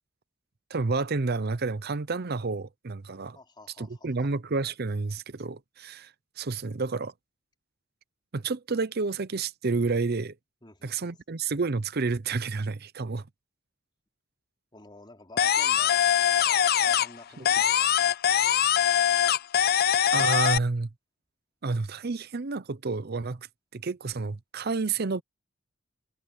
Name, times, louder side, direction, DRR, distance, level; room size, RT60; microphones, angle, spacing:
voice 1, 0.7-3.4 3.8-6.1 6.4-7.1 8.3-10.3 10.8-13.3 17.4-17.5 20.1-20.9 21.6-23.5 23.7-25.2, right 4 dB, 50° right, 0.7 m, -30 dB
voice 2, 3.3-4.3 10.6-11.2 14.7-18.1, left 2 dB, 25° left, 4.5 m, -50 dB
sound 1, 15.4-17.2 17.4-20.6, left 9 dB, 50° left, 0.5 m, -22 dB
head